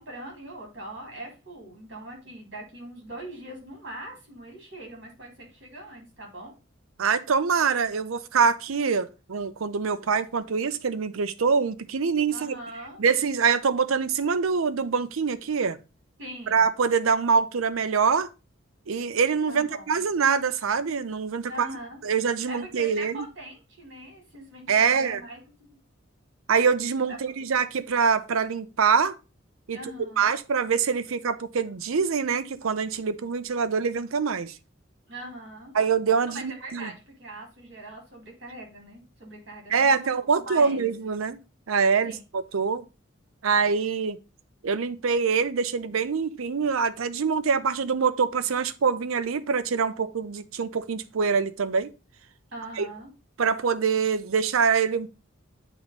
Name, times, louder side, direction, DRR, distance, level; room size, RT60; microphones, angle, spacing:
voice 1, 0.0-6.5 12.3-13.0 16.2-16.7 19.5-20.0 21.5-22.0 22.5-25.4 27.1-27.5 29.7-30.3 35.1-35.7 36.2-40.1 40.3-40.9 42.0-42.2 52.5-53.1, right 1 dB, 55° right, 3.6 m, -41 dB
voice 2, 7.0-12.5 13.0-15.8 16.5-18.3 18.9-21.7 22.0-23.3 24.7-25.2 26.5-29.1 29.7-29.8 30.2-34.6 35.7-36.9 39.7-41.4 41.7-42.8 43.4-44.2 44.6-51.9 52.8-52.9 53.4-55.1, right 5 dB, 90° right, 0.6 m, -24 dB
8.8 x 3.1 x 5.2 m
head